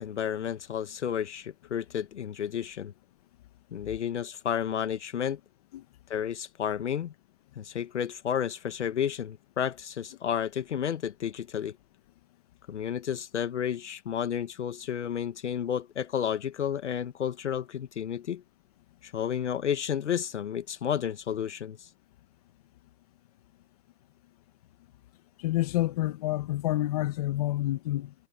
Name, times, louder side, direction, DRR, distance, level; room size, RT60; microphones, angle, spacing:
voice 1, 0.0-2.9 3.7-5.4 6.1-7.1 7.5-11.7 12.7-18.4 19.0-21.9, left 9 dB, 55° left, 1.6 m, -31 dB
voice 2, 25.4-28.1, left 16 dB, 25° left, 1.8 m, -28 dB
hypercardioid pair, 160°, 43 cm